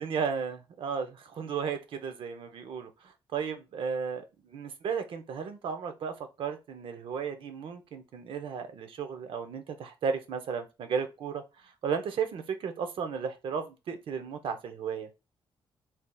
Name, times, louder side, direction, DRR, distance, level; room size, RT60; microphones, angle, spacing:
voice 1, 0.0-15.1, right 6 dB, 65° right, 8 dB, 0.6 m, -34 dB
3.3 x 2.8 x 2.2 m, 0.26 s
cardioid pair, 130°, 9 cm